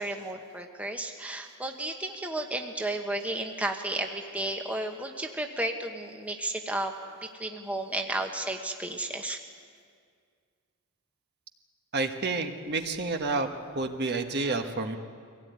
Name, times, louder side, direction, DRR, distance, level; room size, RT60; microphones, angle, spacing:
voice 1, 0.0-6.9 7.2-9.4, right 1 dB, 5° right, 3 dB, 1.2 m, -33 dB
voice 2, 11.9-13.5 13.7-15.0, right 3 dB, 50° right, 5 dB, 1.4 m, -29 dB
23.5 x 17.0 x 9.5 m, 2.1 s
head